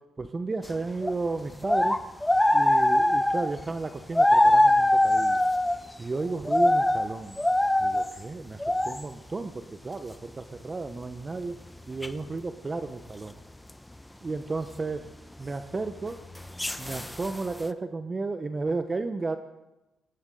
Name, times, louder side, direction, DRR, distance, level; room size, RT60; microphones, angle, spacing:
voice 1, 0.2-2.0 2.5-5.4 6.0-7.4 7.8-11.6 11.9-13.4 14.2-15.0 15.4-16.2 16.8-19.4, right 3 dB, 35° right, 9 dB, 0.9 m, -33 dB
sound 1, 1.0-1.1 1.6-3.5 4.2-5.8 6.3-7.1 7.4-8.1 8.6-9.0 12.0-12.3 16.1-17.6, left 1 dB, 10° left, 0.9 m, -22 dB
19.5 x 18.5 x 4.0 m, 1.0 s
hypercardioid pair, 50°, 0 cm